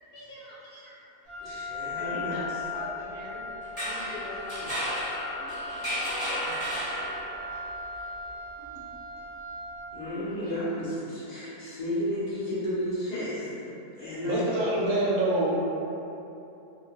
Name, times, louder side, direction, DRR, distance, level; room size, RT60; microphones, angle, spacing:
voice 1, 0.1-0.6 2.0-3.4 3.7-4.8 5.4-5.7 7.1-7.3 8.6-8.9 10.4-10.5, left 1 dB, 70° left, -6 dB, 1.1 m, -42 dB
Wind instrument woodwind instrument, 1.3-10.0, left 3 dB, 45° right, 0.9 m, -38 dB
voice 2, 1.4-2.4 6.4-6.6 9.9-13.7 13.9-14.5, equal, 40° left, -11 dB, 0.6 m, -33 dB
sound 1, 3.6-7.5, equal, 10° left, 0.9 m, -33 dB
voice 3, 14.2-15.6, right 1 dB, 70° right, -5 dB, 1.0 m, -25 dB
2.8 x 2.3 x 2.8 m, 2.9 s
omnidirectional pair, 1.7 m